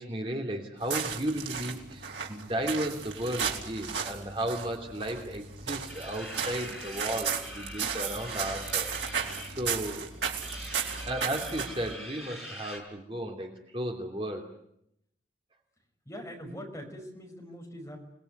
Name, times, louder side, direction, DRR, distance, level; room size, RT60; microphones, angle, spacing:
voice 1, 0.0-10.1 11.0-14.4, right 1 dB, 30° right, 2 dB, 2.9 m, -34 dB
sound 1, 0.8-11.9, right 6 dB, 90° right, 4.2 m, -35 dB
sound 2, 5.9-12.8, equal, ahead, 5.4 m, -43 dB
voice 2, 16.1-18.0, equal, 15° left, 1 dB, 6.0 m, -42 dB
29.0 x 20.0 x 9.5 m, 0.77 s
head